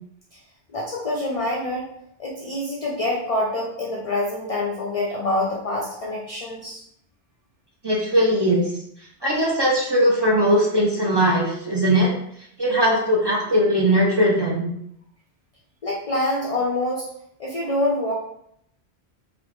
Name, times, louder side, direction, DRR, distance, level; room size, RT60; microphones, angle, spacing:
voice 1, 0.7-1.9 2.2-6.8 15.8-17.1 17.4-18.1, left 1 dB, 45° left, -3 dB, 0.5 m, -26 dB
voice 2, 7.8-8.6 9.2-12.1 12.6-14.7, equal, 35° right, -3 dB, 0.4 m, -19 dB
3.3 x 2.4 x 3.0 m, 0.72 s
omnidirectional pair, 1.1 m